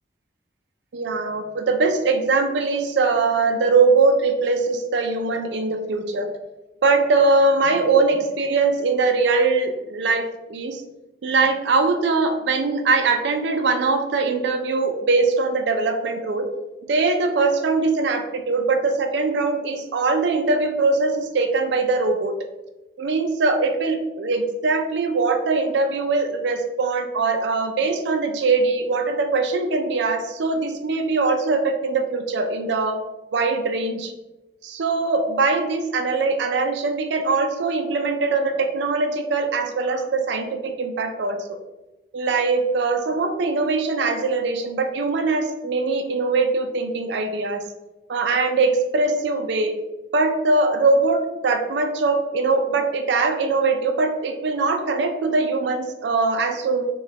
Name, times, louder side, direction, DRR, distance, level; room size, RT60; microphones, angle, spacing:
voice 1, 0.9-6.3 6.8-10.8 11.2-16.5 16.9-22.3 23.0-33.0 33.3-34.1 34.6-41.4 42.1-47.6 48.1-49.7 50.1-56.8, right 3 dB, 65° right, 5 dB, 0.4 m, -21 dB
4.8 x 2.3 x 2.8 m, 1.0 s
head